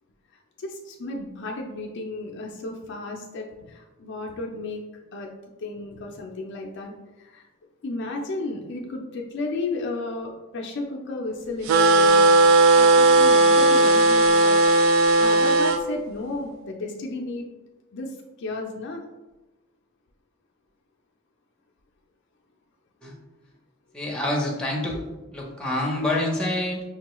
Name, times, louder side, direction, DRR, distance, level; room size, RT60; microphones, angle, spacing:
voice 1, 0.3-4.8 5.1-5.3 5.6-7.5 7.8-12.3 12.8-17.4 17.9-19.0, left 2 dB, 55° left, 1 dB, 0.4 m, -33 dB
sound 1, 11.7-15.8, right 2 dB, 75° right, 0.3 m, -16 dB
voice 2, 23.9-25.0 25.3-26.8, left 1 dB, 5° left, -3 dB, 0.7 m, -26 dB
5.7 x 2.2 x 3.0 m, 1.1 s
head